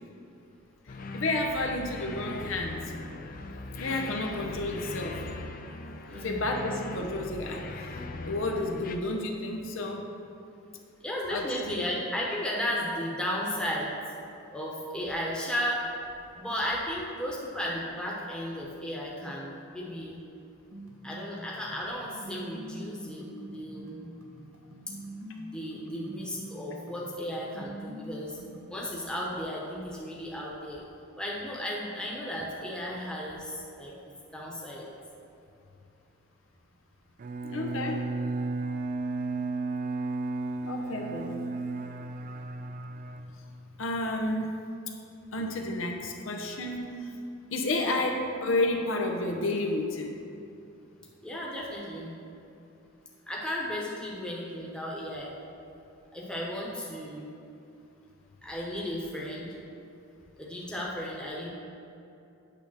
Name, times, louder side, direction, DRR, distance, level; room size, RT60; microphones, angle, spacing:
sound 1, 0.9-9.0, left 2 dB, 45° left, 0.5 m, -40 dB
voice 1, 1.1-2.8 3.8-5.2 6.2-8.0 8.2-10.1 11.3-11.7 37.4-38.0 40.6-41.4 43.8-44.5 45.3-47.1 47.5-50.1, left 2 dB, 80° left, 2 dB, 0.8 m, -31 dB
voice 2, 6.1-6.4 11.0-13.9 14.5-15.8 16.4-20.2 21.0-24.1 25.5-28.4 28.7-30.8 31.2-33.9 34.3-34.9 39.0-40.0 51.2-52.1 53.3-55.3 56.1-57.3 58.4-59.5 60.4-61.5, equal, 5° left, -4 dB, 1.0 m, -34 dB
sound 2, 20.7-28.7, equal, 85° right, 1.0 m, -45 dB
Bowed string instrument, 37.2-43.8, right 3 dB, 40° right, 0.3 m, -34 dB
8.7 x 3.5 x 6.2 m, 2.7 s
head